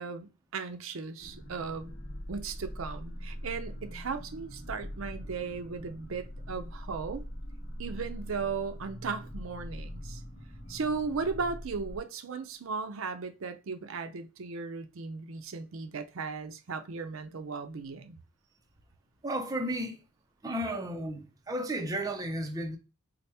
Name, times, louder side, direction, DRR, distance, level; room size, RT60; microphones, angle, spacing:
voice 1, 0.0-1.9 2.3-7.2 7.8-10.2 10.7-18.2, right 4 dB, 75° right, 0.5 m, -36 dB
sound 1, 1.2-12.0, equal, 50° left, 0.9 m, -42 dB
voice 2, 19.2-20.0 20.4-22.8, right 1 dB, 15° right, 0.5 m, -33 dB
4.2 x 2.1 x 3.3 m
head